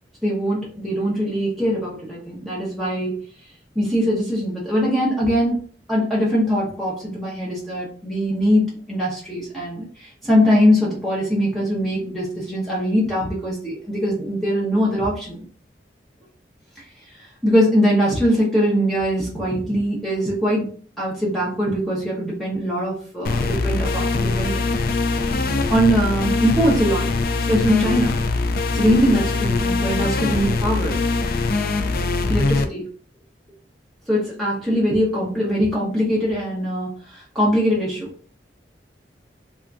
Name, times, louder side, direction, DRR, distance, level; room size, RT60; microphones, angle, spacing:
voice 1, 0.2-3.2 3.8-5.6 5.9-15.4 16.8-16.9 17.1-20.7 21.0-24.6 25.7-27.1 27.5-28.2 28.7-31.0 32.3-32.9 34.1-38.1, equal, ahead, -6 dB, 0.7 m, -21 dB
sound 1, 23.2-32.6, left 3 dB, 55° left, 0.3 m, -22 dB
3.4 x 2.4 x 2.4 m, 0.42 s
head